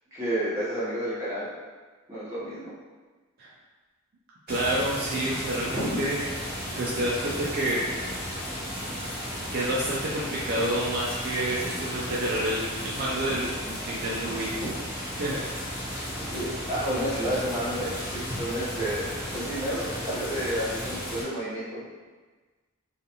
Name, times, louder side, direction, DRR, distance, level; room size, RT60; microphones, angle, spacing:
voice 1, 0.1-1.5 2.1-2.7 5.7-6.0 13.7-13.8 14.6-14.7 16.1-21.8, equal, 15° right, -11 dB, 0.8 m, -31 dB
sound 1, 4.5-21.2, equal, 40° left, 0.8 m, -34 dB
voice 2, 4.5-6.2 6.8-7.9 9.5-13.5 13.9-14.5 15.2-15.4, right 1 dB, 45° right, -6 dB, 0.3 m, -28 dB
2.4 x 2.3 x 2.8 m, 1.3 s
head